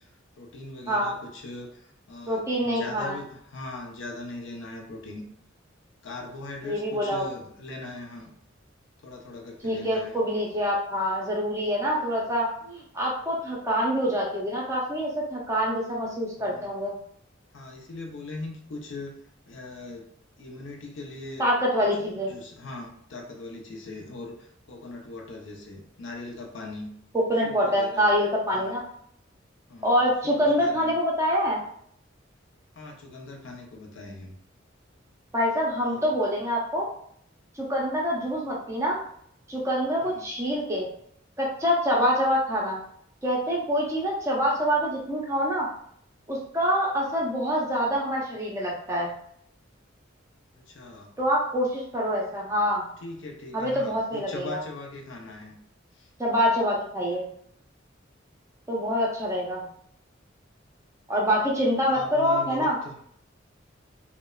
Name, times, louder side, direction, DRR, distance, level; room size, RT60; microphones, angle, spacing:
voice 1, 0.4-1.7 2.1-5.2 6.0-8.3 9.0-10.2 16.4-16.7 17.5-19.1 19.5-20.0 20.4-21.5 21.8-24.3 24.7-26.9 27.3-28.1 28.5-28.8 29.7-31.0 32.8-34.3 35.8-36.2 40.0-40.3 50.7-51.1 53.0-55.5 61.4-62.7, left 2 dB, 75° left, 1 dB, 0.5 m, -40 dB
voice 2, 2.3-3.2 6.6-7.3 9.6-17.0 21.4-22.3 27.1-28.8 29.8-31.6 35.3-36.9 37.6-39.0 39.5-40.9 41.4-42.8 43.2-45.7 46.3-49.1 51.2-52.9 53.5-54.6 56.2-57.3 58.7-59.6 61.1-62.8, equal, 15° right, -4 dB, 0.5 m, -25 dB
3.0 x 2.0 x 2.3 m, 0.67 s
head